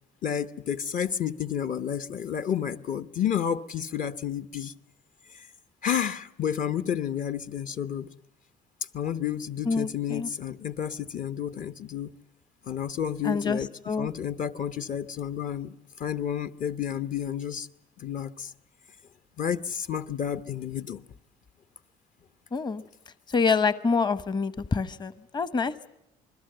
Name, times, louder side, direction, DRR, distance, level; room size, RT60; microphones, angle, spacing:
voice 1, 0.2-4.7 5.3-5.5 5.8-8.1 8.9-12.1 12.7-13.7 14.0-17.7 18.0-18.5 19.4-21.0, left 9 dB, 50° left, 1.0 m, -31 dB
voice 2, 9.7-10.3 13.2-13.6 13.9-14.1 22.5-22.8 23.3-25.9, left 4 dB, 25° left, 1.0 m, -26 dB
27.5 x 21.5 x 7.9 m
cardioid pair, 110°, 17 cm